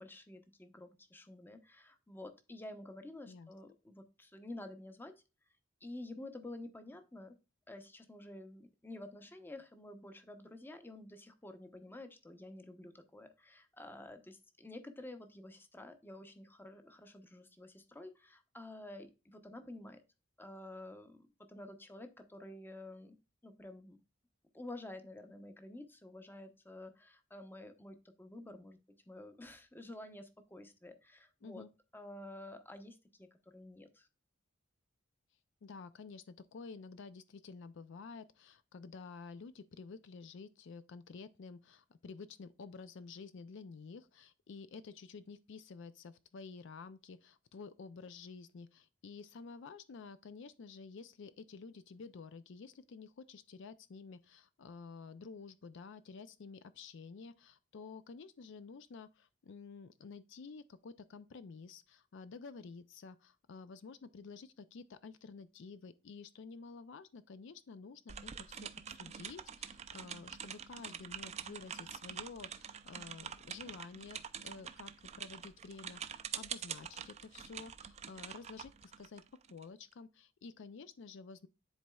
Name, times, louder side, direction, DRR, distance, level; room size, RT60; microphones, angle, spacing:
voice 1, 0.0-5.1 5.8-7.4 7.7-20.0 20.4-23.2 23.4-24.0 24.5-28.8 29.1-31.6 31.9-33.3 33.5-34.1, left 1 dB, 10° left, 0.7 m, -50 dB
voice 2, 35.6-79.2 79.5-81.5, left 4 dB, 65° left, 0.4 m, -51 dB
sound 1, 68.1-79.6, right 8 dB, 35° right, 0.4 m, -46 dB
10.5 x 4.1 x 2.3 m
head